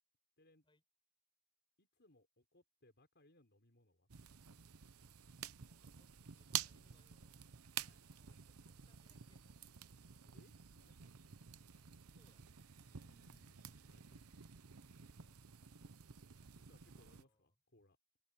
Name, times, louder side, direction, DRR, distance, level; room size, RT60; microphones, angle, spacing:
voice 1, 1.8-4.1 7.8-8.0 10.2-11.1 12.9-14.4 16.6-18.0, left 1 dB, 50° left, 5.5 m, -70 dB
sound 1, 4.1-17.2, right 10 dB, 85° right, 0.8 m, -50 dB
voice 2, 5.4-7.4 8.0-9.8 12.1-12.5 15.1-15.9 16.3-17.6, left 1 dB, 20° left, 7.3 m, -78 dB
head